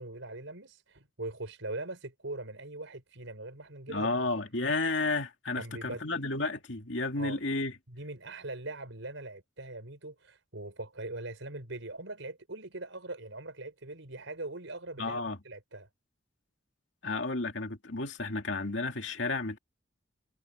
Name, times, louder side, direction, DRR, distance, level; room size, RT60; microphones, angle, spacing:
voice 1, 0.0-4.1 5.6-6.0 7.2-7.4 7.9-15.9, right 2 dB, 80° right, 4.8 m, -41 dB
voice 2, 3.9-7.7 15.0-15.4 17.0-19.6, left 3 dB, 70° left, 2.6 m, -32 dB
head